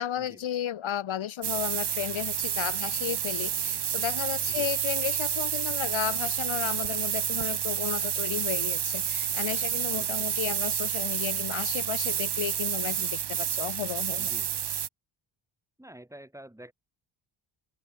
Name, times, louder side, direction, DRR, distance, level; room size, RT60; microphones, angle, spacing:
voice 1, 0.0-14.3, left 10 dB, 65° left, 2.2 m, -33 dB
sound 1, 1.4-14.9, right 9 dB, 50° right, 1.5 m, -29 dB
voice 2, 9.9-10.3 14.2-14.5 15.8-16.7, right 1 dB, 5° right, 5.3 m, -48 dB
open air
cardioid pair, 65°, 50 cm